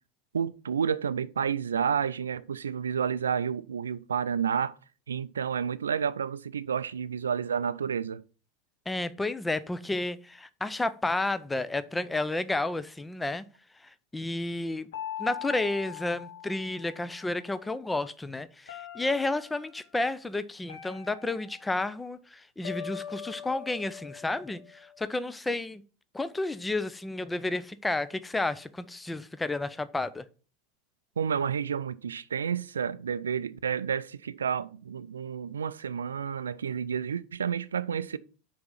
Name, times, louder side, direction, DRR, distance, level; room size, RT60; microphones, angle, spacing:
voice 1, 0.3-4.8 5.1-8.2 31.2-38.2, right 7 dB, 80° right, 0.4 m, -30 dB
voice 2, 8.9-13.4 14.1-14.9 15.2-25.8 26.1-30.3, left 2 dB, 10° left, 0.6 m, -31 dB
sound 1, 14.9-17.3 18.7-19.7 20.7-22.0 22.6-25.0, left 10 dB, 65° left, 1.2 m, -42 dB
6.0 x 4.8 x 5.7 m
figure-of-eight pair, 80°, 0 cm